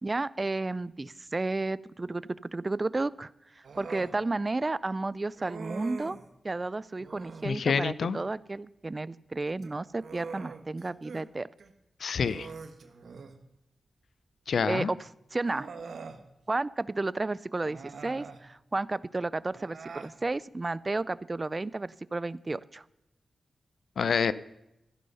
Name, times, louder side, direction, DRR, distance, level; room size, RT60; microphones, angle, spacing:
voice 1, 0.0-3.3 3.6-6.2 6.4-11.5 14.7-15.0 15.3-15.7 16.5-22.8, right 2 dB, 35° right, 20 dB, 0.4 m, -32 dB
Human voice, 3.6-4.2 5.4-6.3 7.0-7.5 9.5-11.2 11.6-11.7 12.2-13.4 14.6-14.7 15.4-16.2 17.6-18.4 19.5-20.1, right 4 dB, 70° right, 1.2 m, -43 dB
voice 2, 7.4-8.2 12.0-12.5 14.5-14.9 24.0-24.3, left 6 dB, 75° left, 16 dB, 0.5 m, -27 dB
14.0 x 11.0 x 5.5 m, 0.89 s
cardioid pair, 55°, 0 cm